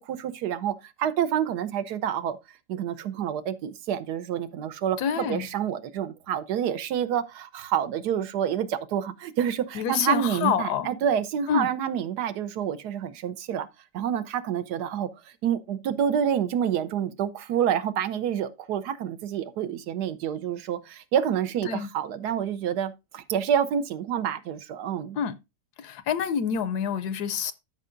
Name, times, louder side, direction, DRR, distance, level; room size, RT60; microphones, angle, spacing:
voice 1, 0.0-2.4 2.7-13.7 13.9-15.1 15.4-25.2, right 9 dB, 70° right, 1.2 m, -28 dB
voice 2, 5.0-5.5 9.7-10.9 11.5-11.7 21.6-21.9 25.2-25.3 25.8-27.5, left 7 dB, 70° left, 1.1 m, -27 dB
12.5 x 5.5 x 2.5 m
omnidirectional pair, 1.9 m